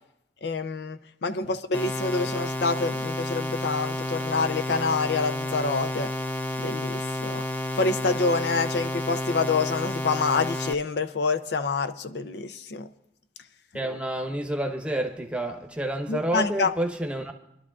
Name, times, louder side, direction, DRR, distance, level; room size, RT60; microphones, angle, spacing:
voice 1, 0.4-6.1 6.6-7.4 7.8-12.9 16.1-16.7, left 4 dB, 65° left, 0.5 m, -27 dB
sound 1, 1.7-10.7, left 1 dB, 10° left, 0.7 m, -31 dB
voice 2, 13.7-17.3, right 1 dB, 5° right, 1.0 m, -29 dB
25.0 x 11.5 x 2.4 m
head